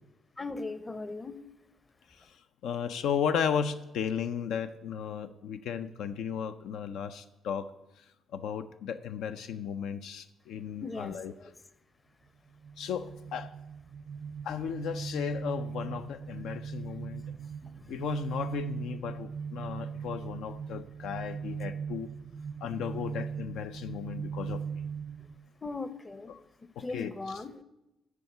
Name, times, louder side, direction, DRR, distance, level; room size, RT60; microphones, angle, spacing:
voice 1, 0.4-1.4 10.8-11.5 17.6-18.1 25.6-26.3 26.6-27.6, left 3 dB, 25° left, 14 dB, 0.6 m, -39 dB
voice 2, 2.6-7.7 8.3-11.3 12.8-13.5 14.4-17.2 17.9-22.1 22.6-24.8 26.3-26.4 26.8-27.4, left 7 dB, 85° left, 9 dB, 0.4 m, -35 dB
sound 1, 12.6-25.4, right 6 dB, 50° right, 0.3 m, -39 dB
9.7 x 4.8 x 7.8 m, 0.94 s
cardioid pair, 90°, 0 cm